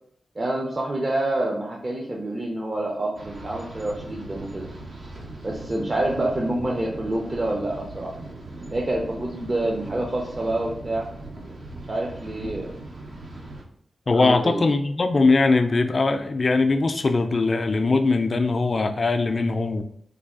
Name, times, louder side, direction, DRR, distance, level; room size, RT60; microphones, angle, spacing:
voice 1, 0.4-4.7 5.4-8.1 8.7-11.1 11.9-12.8 14.1-14.6, right 1 dB, 40° right, -1 dB, 0.6 m, -27 dB
sound 1, 3.2-13.6, right 2 dB, 75° right, 0.7 m, -39 dB
voice 2, 14.1-19.8, left 3 dB, 50° left, 8 dB, 0.4 m, -21 dB
3.3 x 2.2 x 3.6 m, 0.67 s
cardioid pair, 65°, 0 cm